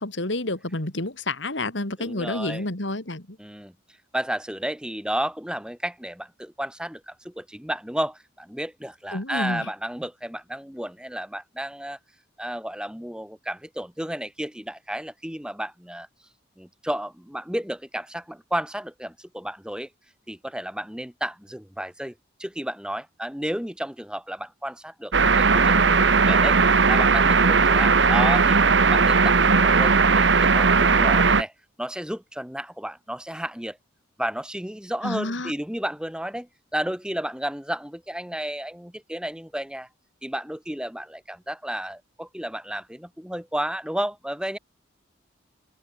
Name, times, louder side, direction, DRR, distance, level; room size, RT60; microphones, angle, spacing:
voice 1, 0.0-3.4 9.1-9.7 35.0-35.5, left 2 dB, 75° left, 3.1 m, -29 dB
voice 2, 2.0-2.6 3.4-3.7 4.1-12.0 12.4-16.1 16.6-19.9 20.3-22.1 22.4-26.6 26.9-28.6 28.9-31.5 31.8-33.8 34.2-39.9 40.2-44.6, right 1 dB, 5° right, 2.1 m, -32 dB
sound 1, 25.1-31.4, right 4 dB, 70° right, 1.2 m, -18 dB
open air
head